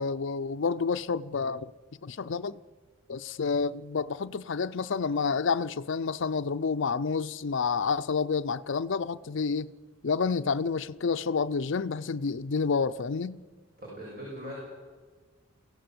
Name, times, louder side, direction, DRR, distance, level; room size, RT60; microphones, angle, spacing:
voice 1, 0.0-1.7 2.0-2.6 3.1-9.7 10.0-13.4, left 5 dB, 60° left, 0.5 m, -29 dB
voice 2, 13.8-14.5, equal, 45° right, 6.9 m, -40 dB
23.0 x 16.5 x 7.8 m
head